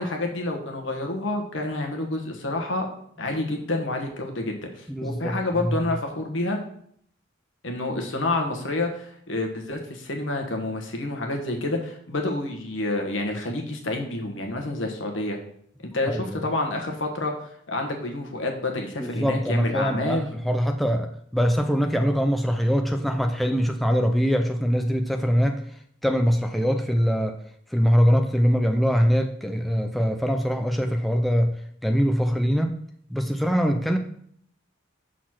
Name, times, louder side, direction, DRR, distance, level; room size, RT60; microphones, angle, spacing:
voice 1, 0.0-2.9 3.2-6.6 7.6-15.4 15.9-20.3, left 2 dB, 70° left, 2 dB, 1.3 m, -28 dB
voice 2, 4.9-5.8 16.1-16.5 19.0-25.6 26.0-27.4 27.7-31.5 31.8-32.8 33.1-34.0, equal, ahead, 4 dB, 0.4 m, -23 dB
6.2 x 4.0 x 6.1 m, 0.66 s
head